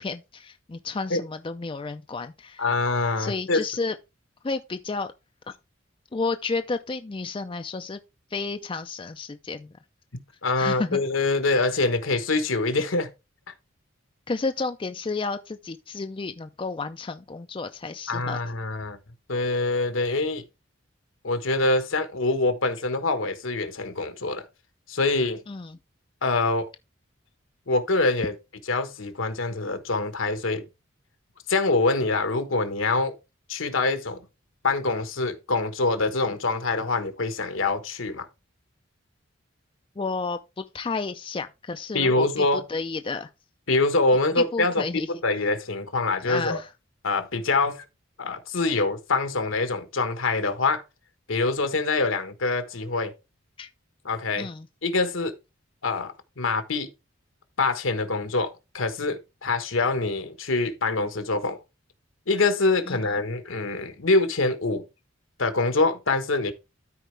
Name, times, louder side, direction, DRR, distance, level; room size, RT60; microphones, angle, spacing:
voice 1, 0.0-2.6 3.2-3.9 4.4-5.1 6.1-8.0 8.3-9.7 10.6-11.0 14.3-18.4 25.5-25.8 40.0-43.3 44.4-45.1 46.2-46.7 53.6-53.7 54.4-54.7 62.9-63.0, left 4 dB, 25° left, 0.4 m, -31 dB
voice 2, 2.6-3.6 10.4-13.1 13.5-13.6 18.1-19.0 19.3-20.4 21.2-24.4 24.9-25.4 26.2-26.7 27.7-28.3 28.7-30.6 31.5-33.1 33.5-34.2 34.6-38.3 41.9-42.6 43.7-46.6 47.0-47.8 48.2-50.8 51.3-53.1 54.0-54.5 54.8-55.3 55.8-56.9 57.6-61.6 62.3-64.8 65.4-66.5, left 3 dB, 80° left, 1.3 m, -25 dB
13.0 x 4.7 x 3.3 m
head